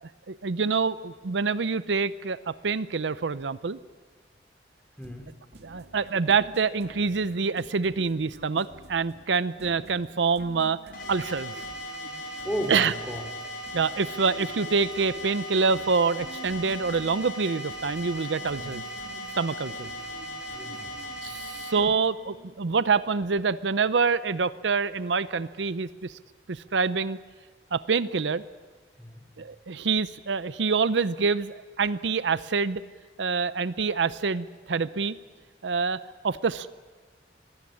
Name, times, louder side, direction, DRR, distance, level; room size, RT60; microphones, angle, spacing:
voice 1, 0.0-3.8 5.6-10.8 11.1-11.6 12.7-12.9 13.7-18.8 19.3-19.9 21.2-26.2 26.5-27.2 27.7-28.4 29.4-32.8 33.2-35.2 35.6-36.7, right 5 dB, 85° right, 16 dB, 0.6 m, -26 dB
voice 2, 5.0-5.3 12.4-13.2 18.6-18.8 19.8-19.9 20.2-21.1 29.0-29.2, equal, 5° left, 4 dB, 2.8 m, -35 dB
sound 1, 5.0-22.5, right 1 dB, 65° right, 2.1 m, -49 dB
sound 2, 10.9-21.7, equal, 55° left, 6.3 m, -38 dB
25.0 x 16.0 x 9.9 m, 1.5 s
head